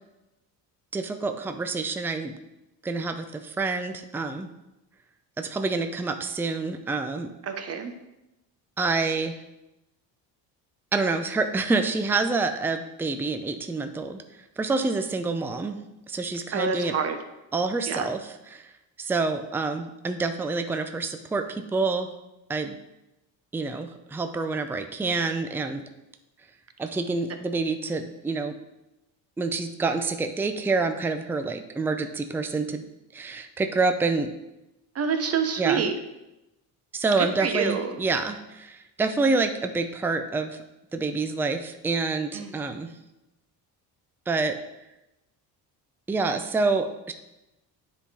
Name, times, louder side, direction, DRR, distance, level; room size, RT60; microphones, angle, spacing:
voice 1, 0.9-2.3 2.8-4.5 5.4-7.3 8.8-9.4 10.9-14.2 14.6-15.8 16.1-16.9 17.5-18.2 18.5-18.7 19.0-22.1 22.5-22.8 23.5-25.8 26.8-28.6 29.4-32.8 33.1-34.3 35.6-35.8 36.9-40.6 40.9-42.9 44.3-44.6 46.1-47.1, right 3 dB, 5° right, 7 dB, 0.4 m, -27 dB
voice 2, 7.4-7.9 16.5-17.2 17.9-18.1 34.9-35.9 37.2-38.0 42.3-42.5, right 6 dB, 40° right, 7 dB, 0.9 m, -27 dB
9.8 x 3.8 x 4.2 m, 0.95 s
cardioid pair, 105°, 40 cm